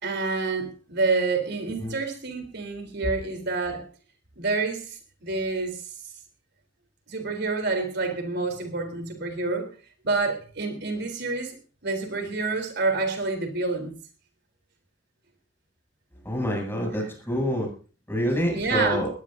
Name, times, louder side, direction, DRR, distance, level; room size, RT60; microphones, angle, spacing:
voice 1, 0.0-3.8 4.4-4.9 5.2-5.8 7.1-9.7 10.0-11.6 11.8-13.9 18.5-19.0, right 3 dB, 60° right, 5 dB, 3.8 m, -28 dB
voice 2, 16.2-17.7 18.1-19.1, equal, 15° left, 1 dB, 7.7 m, -27 dB
20.5 x 18.5 x 2.7 m, 0.38 s
head